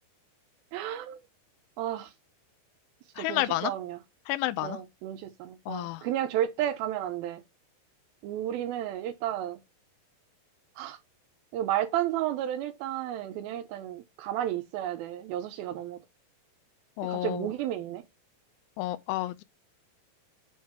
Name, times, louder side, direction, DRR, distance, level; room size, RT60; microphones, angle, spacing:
voice 1, 0.7-1.2 1.8-2.1 3.2-4.0 4.6-7.4 8.2-9.6 10.8-11.0 11.5-16.0 17.0-18.0, right 12 dB, 80° right, 2.2 m, -32 dB
voice 2, 3.2-3.7 4.3-4.8 5.7-6.0 17.0-17.5 18.8-19.4, left 16 dB, 85° left, 2.6 m, -30 dB
8.4 x 3.4 x 4.4 m
omnidirectional pair, 5.0 m